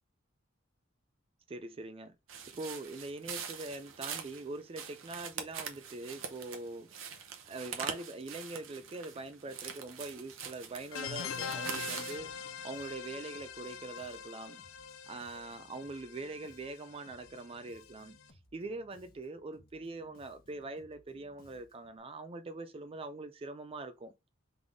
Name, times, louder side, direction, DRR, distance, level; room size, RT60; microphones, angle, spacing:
voice 1, 1.5-2.2 2.5-6.9 7.5-12.3 12.6-14.6 15.1-18.2 18.5-24.1, right 2 dB, 30° right, 0.4 m, -43 dB
sound 1, 2.3-12.2, right 7 dB, 70° right, 0.8 m, -43 dB
sound 2, 10.9-18.2, left 6 dB, 85° left, 0.4 m, -43 dB
Bass guitar, 12.1-22.0, left 1 dB, 45° left, 1.0 m, -64 dB
3.8 x 3.4 x 3.5 m
head